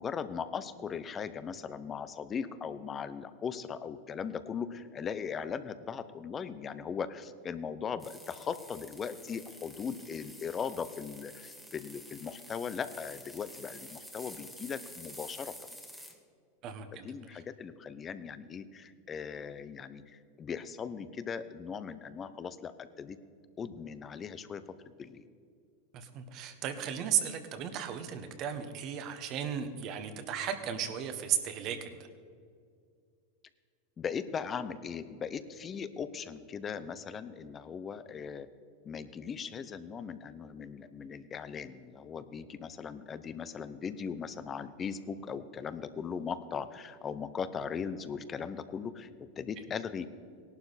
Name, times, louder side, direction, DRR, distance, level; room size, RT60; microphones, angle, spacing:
voice 1, 0.0-15.5 16.9-23.2 23.6-25.3 34.0-38.5 38.8-50.1, left 6 dB, 25° left, 13 dB, 0.8 m, -39 dB
sound 1, 8.0-16.2, equal, ahead, 1.6 m, -49 dB
voice 2, 16.6-17.1 25.9-32.1, right 9 dB, 45° right, 8 dB, 1.4 m, -35 dB
17.5 x 11.5 x 4.2 m, 2.2 s
hypercardioid pair, 110°, 0 cm